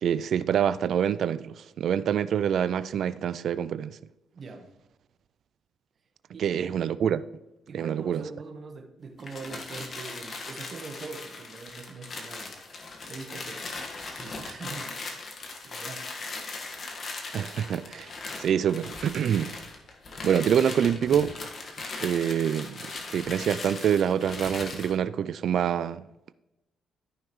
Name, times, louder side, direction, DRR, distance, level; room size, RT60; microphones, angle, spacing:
voice 1, 0.0-4.0 6.4-7.2 7.7-8.2 17.3-18.1 18.4-19.5 20.2-21.4 22.0-26.0, right 8 dB, 65° right, 0.3 m, -26 dB
voice 2, 4.3-4.7 6.3-6.8 7.7-12.5 13.0-13.6 14.2-15.2 15.6-16.1, right 4 dB, 45° right, 1.3 m, -42 dB
sound 1, 9.2-25.0, left 3 dB, 45° left, 1.6 m, -39 dB
13.5 x 5.7 x 3.1 m
cardioid pair, 90°, 0 cm